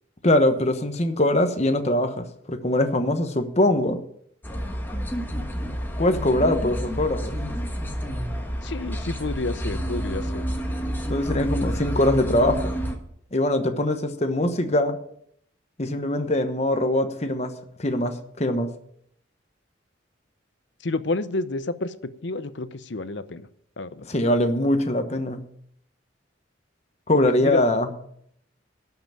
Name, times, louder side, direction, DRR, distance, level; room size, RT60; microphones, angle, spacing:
voice 1, 0.2-4.0 6.0-7.4 11.1-12.7 13.3-15.0 15.8-17.5 17.8-18.7 24.1-25.4 27.1-27.9, left 1 dB, 35° left, 8 dB, 1.1 m, -22 dB
sound 1, 4.4-13.0, equal, 10° left, 1.4 m, -29 dB
voice 2, 8.6-10.6 20.8-23.5 23.8-24.1 27.1-27.6, left 2 dB, 65° left, 13 dB, 0.7 m, -30 dB
12.5 x 5.9 x 8.9 m, 0.70 s
head